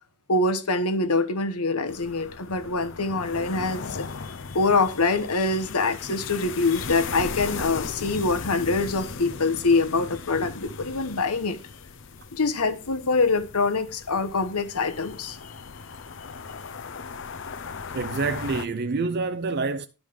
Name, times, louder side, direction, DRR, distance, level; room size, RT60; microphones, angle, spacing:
voice 1, 0.3-11.6 12.3-15.5, left 3 dB, 85° left, 1.2 m, -25 dB
sound 1, 1.9-18.7, left 5 dB, 60° left, 0.8 m, -37 dB
voice 2, 17.9-19.9, right 4 dB, 45° right, 0.4 m, -27 dB
11.5 x 5.2 x 5.2 m
head